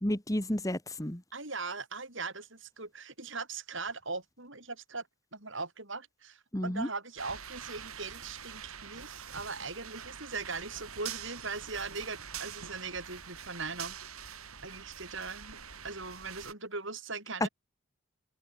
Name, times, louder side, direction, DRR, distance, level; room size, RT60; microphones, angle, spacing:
voice 1, 0.0-1.2 6.5-6.9 17.4-17.5, left 1 dB, 15° left, 1.6 m, -31 dB
voice 2, 1.3-5.0 5.3-14.0 14.6-15.6 15.8-17.5, right 4 dB, 60° right, 7.7 m, -40 dB
sound 1, 7.2-16.5, right 8 dB, 85° right, 6.9 m, -45 dB
open air
head